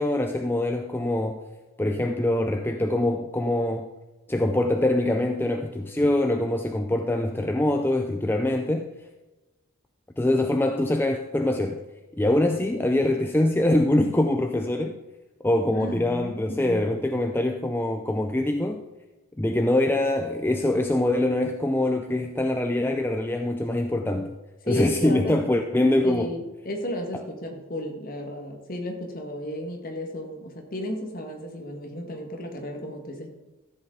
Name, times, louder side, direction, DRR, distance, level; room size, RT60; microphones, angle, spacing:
voice 1, 0.0-1.4 1.8-3.9 4.3-8.9 10.2-11.8 12.2-15.0 15.4-18.8 19.4-24.4 24.7-26.3, left 1 dB, 10° left, 4 dB, 0.4 m, -24 dB
voice 2, 15.7-16.9 24.6-25.4 26.0-33.3, left 1 dB, 40° left, 3 dB, 1.5 m, -33 dB
13.5 x 7.8 x 3.8 m, 1.1 s
head